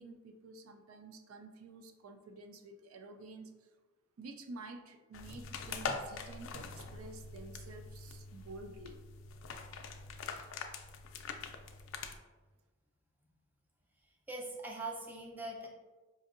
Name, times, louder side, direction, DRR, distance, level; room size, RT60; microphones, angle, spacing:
voice 1, 0.0-3.5 4.2-9.0, right 2 dB, 85° right, 6 dB, 0.4 m, -50 dB
sound 1, 5.1-12.2, left 4 dB, 70° left, 0.4 m, -44 dB
voice 2, 14.3-15.7, right 2 dB, 10° right, -1 dB, 0.5 m, -42 dB
5.1 x 2.7 x 2.5 m, 1.2 s
head